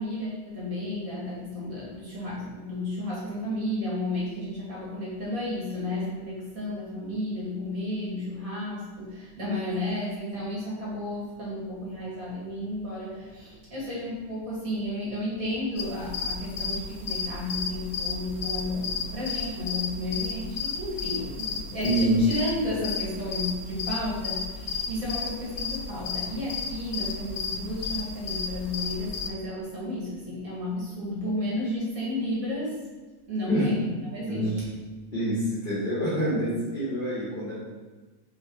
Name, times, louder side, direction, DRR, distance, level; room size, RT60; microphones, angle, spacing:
voice 1, 0.0-32.8 33.3-33.8 34.1-34.7, left 1 dB, 70° right, -8 dB, 2.5 m, -32 dB
sound 1, 15.8-29.3, left 5 dB, 85° left, 1.1 m, -33 dB
voice 2, 21.8-22.2 33.5-33.7 34.3-34.6 35.1-37.6, right 1 dB, 35° left, -11 dB, 2.4 m, -26 dB
4.9 x 4.5 x 4.6 m, 1.3 s
omnidirectional pair, 1.5 m